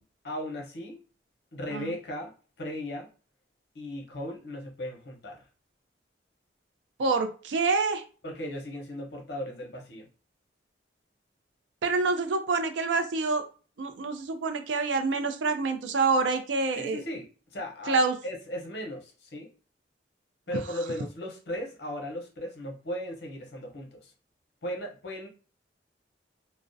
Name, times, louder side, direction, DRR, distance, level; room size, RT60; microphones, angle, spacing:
voice 1, 0.2-1.0 1.5-2.3 2.6-3.1 3.7-5.4 8.2-10.1 16.8-18.0 18.2-19.5 20.5-24.1 24.6-25.3, left 1 dB, 65° left, 1 dB, 0.7 m, -37 dB
voice 2, 7.0-8.0 11.8-13.4 13.8-17.0 17.9-18.1, right 4 dB, 90° right, 8 dB, 0.4 m, -27 dB
2.3 x 2.1 x 2.6 m, 0.37 s
head